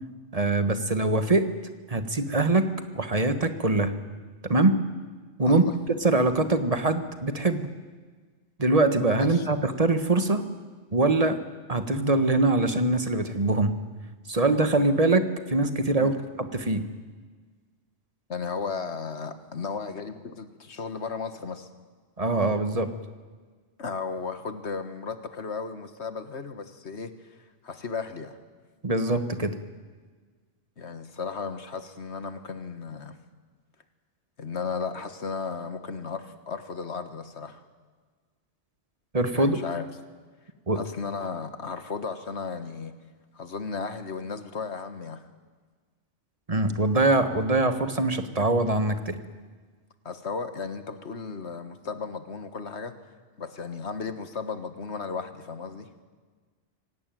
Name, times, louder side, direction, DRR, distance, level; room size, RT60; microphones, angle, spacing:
voice 1, 0.3-1.5 1.9-2.7 2.9-3.9 4.4-4.8 5.4-5.6 6.0-7.7 8.6-10.4 10.9-11.4 11.7-13.8 14.3-16.8 22.2-22.9 28.8-29.5 39.1-39.6 40.7-40.8 46.5-49.2, right 2 dB, 35° right, 9 dB, 1.5 m, -23 dB
voice 2, 5.4-5.8 9.2-9.5 16.0-16.1 18.3-21.7 23.8-27.1 27.6-28.4 30.8-33.2 34.4-37.6 39.3-39.9 40.7-42.9 43.3-45.2 50.1-52.9 53.4-55.9, left 5 dB, 80° left, 9 dB, 1.8 m, -35 dB
26.0 x 17.5 x 9.2 m, 1.5 s
omnidirectional pair, 1.1 m